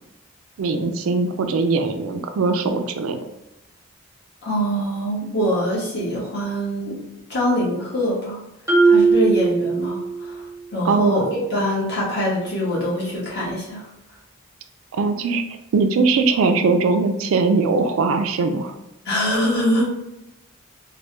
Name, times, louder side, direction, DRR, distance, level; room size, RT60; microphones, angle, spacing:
voice 1, 0.6-3.2 10.8-11.2 14.9-15.4 15.7-18.7, right 4 dB, 75° right, 7 dB, 0.4 m, -20 dB
voice 2, 4.4-7.0 7.3-8.4 8.8-10.4 10.7-13.8 19.0-19.8, equal, 50° left, -7 dB, 1.3 m, -23 dB
Marimba xylophone, 8.7-10.4, right 4 dB, 15° right, 0.6 m, -18 dB
3.2 x 2.2 x 2.9 m, 0.92 s
head